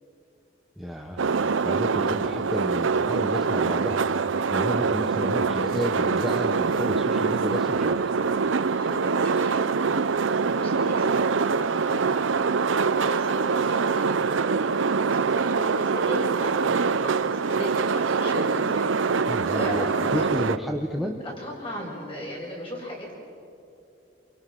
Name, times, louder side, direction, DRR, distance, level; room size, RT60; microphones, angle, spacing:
voice 1, 0.8-1.2 1.6-4.0 4.5-8.2 19.3-21.2, equal, ahead, 0 dB, 1.2 m, -31 dB
sound 1, 1.2-20.6, right 5 dB, 85° right, 0.6 m, -24 dB
voice 2, 8.4-20.5 21.0-23.2, equal, 30° left, -3 dB, 7.0 m, -37 dB
29.0 x 28.5 x 6.3 m, 2.7 s
head